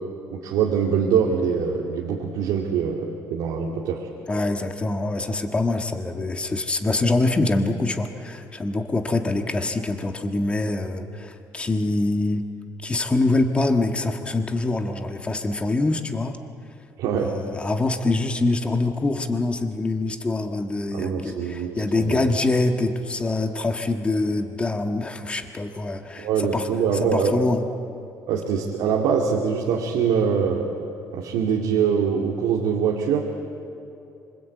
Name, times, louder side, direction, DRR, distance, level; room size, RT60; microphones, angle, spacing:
voice 1, 0.3-4.1 17.0-17.3 20.9-22.4 26.2-27.3 28.3-30.8 31.1-33.3, right 7 dB, 85° right, 0 dB, 2.4 m, -23 dB
voice 2, 4.3-12.4 12.8-16.4 17.2-26.7 27.0-27.6, left 2 dB, 15° left, 5 dB, 1.5 m, -24 dB
26.5 x 24.5 x 8.4 m, 2.7 s
cardioid pair, 145°, 7 cm